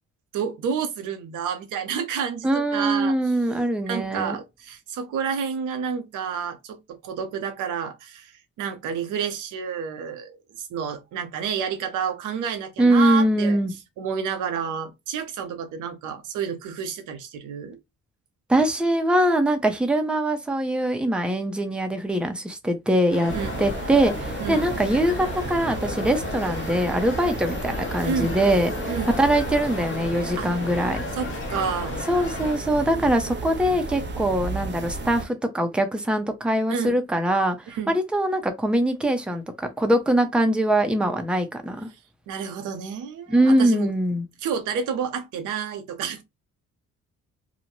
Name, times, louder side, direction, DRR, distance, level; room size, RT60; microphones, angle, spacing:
voice 1, 0.3-3.3 3.9-8.3 8.6-13.6 14.0-17.8 23.3-23.5 24.4-24.7 28.0-28.4 28.9-29.1 30.4-30.5 31.1-32.0 36.7-37.0 37.7-37.9 42.3-43.9 44.4-46.2, right 7 dB, 85° right, 0.7 m, -30 dB
voice 2, 2.4-4.4 12.8-13.7 18.5-23.3 23.6-28.9 29.2-31.0 32.1-41.9 43.3-44.3, right 1 dB, 5° right, 0.6 m, -22 dB
sound 1, 23.1-32.6, left 4 dB, 40° left, 0.9 m, -35 dB
sound 2, 23.3-35.3, right 3 dB, 35° right, 0.8 m, -33 dB
2.6 x 2.1 x 3.0 m
cardioid pair, 90°, 30 cm